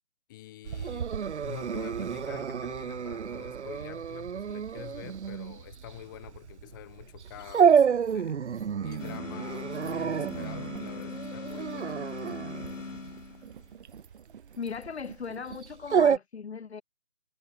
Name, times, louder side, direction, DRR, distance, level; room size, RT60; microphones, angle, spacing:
voice 1, 0.3-1.1 1.4-12.0, left 15 dB, 15° left, 1.4 m, -46 dB
Dog, 0.6-16.2, right 7 dB, 60° right, 0.7 m, -29 dB
sound 1, 6.9-7.0 7.3-15.7, right 7 dB, 40° right, 7.4 m, -53 dB
sound 2, 9.0-13.7, left 4 dB, 70° left, 6.3 m, -40 dB
voice 2, 14.6-16.8, left 6 dB, 55° left, 1.4 m, -38 dB
figure-of-eight pair, 155°, 39 cm